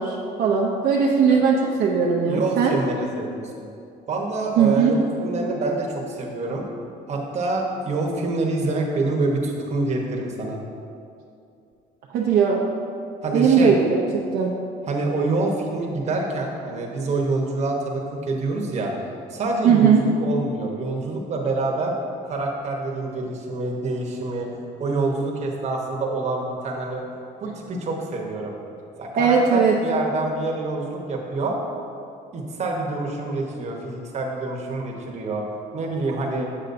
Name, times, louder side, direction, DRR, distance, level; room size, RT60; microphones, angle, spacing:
voice 1, 0.0-2.8 4.6-4.9 12.1-12.6 13.3-14.5 19.6-20.0 29.2-29.8, right 6 dB, 70° right, -2 dB, 0.6 m, -19 dB
voice 2, 2.3-3.7 4.1-6.6 7.1-10.6 13.2-13.7 14.9-18.9 19.3-21.9 22.2-24.5 24.8-27.0 27.4-28.5 29.0-31.6 32.3-35.4 35.7-36.5, right 2 dB, 40° right, 0 dB, 1.0 m, -26 dB
7.1 x 6.7 x 2.6 m, 2.5 s
cardioid pair, 110°, 17 cm